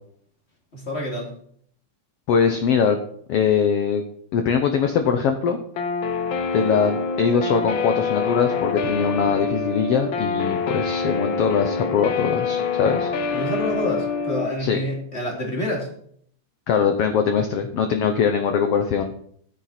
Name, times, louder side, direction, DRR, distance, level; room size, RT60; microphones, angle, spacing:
voice 1, 0.7-1.3 13.3-15.9, equal, 20° left, 0 dB, 2.7 m, -27 dB
voice 2, 2.3-3.0 3.3-4.0 4.3-5.6 6.5-13.1 14.6-14.8 16.7-19.1, left 6 dB, 65° left, 6 dB, 1.6 m, -21 dB
Guitar, 5.8-14.5, left 5 dB, 85° left, 1.0 m, -26 dB
13.0 x 9.8 x 4.4 m, 0.63 s
omnidirectional pair, 3.5 m